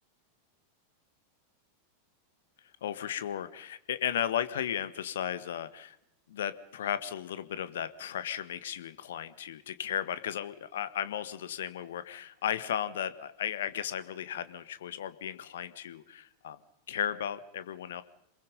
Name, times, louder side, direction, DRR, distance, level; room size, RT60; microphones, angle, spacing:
voice 1, 2.8-6.0 6.3-16.6 16.9-18.0, left 10 dB, 60° left, 14 dB, 1.5 m, -35 dB
28.0 x 21.5 x 5.3 m, 0.81 s
figure-of-eight pair, 90°, 0 cm